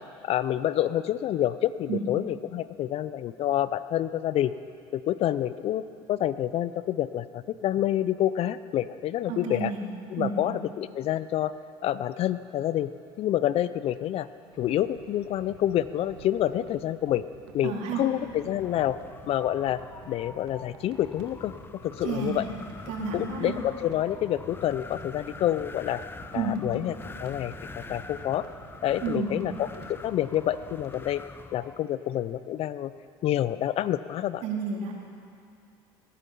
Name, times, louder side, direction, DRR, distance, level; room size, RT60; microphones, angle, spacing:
voice 1, 0.0-4.5 4.9-9.7 10.1-11.5 11.8-12.9 13.2-14.3 14.6-17.2 17.5-19.0 19.3-19.8 20.0-21.5 21.8-22.5 23.1-26.0 26.3-26.9 27.2-28.5 28.8-31.2 31.5-32.9 33.2-34.4, left 12 dB, 55° left, 15 dB, 0.5 m, -28 dB
voice 2, 9.3-9.8 10.2-10.4 17.6-18.0 22.0-22.5 22.9-23.5 26.3-26.6 29.0-29.4 34.4-34.9, right 5 dB, 65° right, 0 dB, 2.5 m, -30 dB
sound 1, 14.4-31.1, right 7 dB, 90° right, 1.3 m, -52 dB
Wind, 18.2-31.8, left 3 dB, 20° left, 0.7 m, -44 dB
19.0 x 10.0 x 5.5 m, 2.4 s
supercardioid pair, 80°, 12 cm